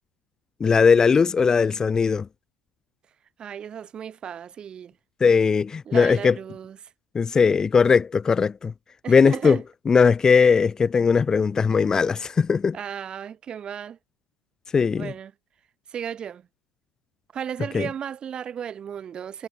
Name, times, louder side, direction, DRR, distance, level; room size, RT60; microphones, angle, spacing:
voice 1, 0.6-2.3 5.2-6.4 7.1-8.7 9.1-9.6 9.9-12.8 14.7-15.1 17.7-17.9, left 5 dB, 25° left, 1.0 m, -19 dB
voice 2, 3.4-4.9 5.9-6.8 9.0-9.6 12.7-14.0 14.9-15.3 15.9-16.4 17.3-19.5, right 8 dB, 35° right, 4.8 m, -34 dB
hypercardioid pair, 90°, 3 cm